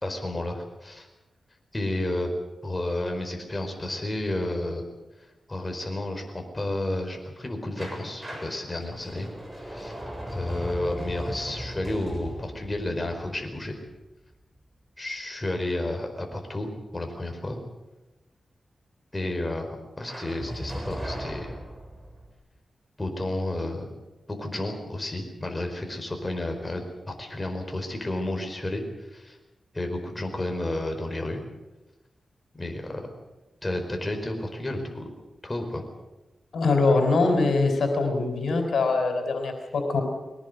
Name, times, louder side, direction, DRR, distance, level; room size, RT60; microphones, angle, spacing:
voice 1, 0.0-1.1 1.7-2.3 2.6-4.8 5.5-9.3 9.6-10.0 10.3-13.8 15.0-17.6 19.1-21.5 23.0-23.9 24.3-29.4 29.7-31.4 32.5-33.1 33.6-35.1 35.4-35.8, left 1 dB, 20° left, 4 dB, 4.7 m, -31 dB
sound 1, 7.8-14.6 20.1-22.3, equal, 15° right, 7.8 m, -38 dB
voice 2, 36.5-40.0, left 3 dB, 85° left, 5 dB, 4.0 m, -23 dB
22.0 x 18.5 x 8.0 m, 1.1 s
wide cardioid pair, 80°, 0 cm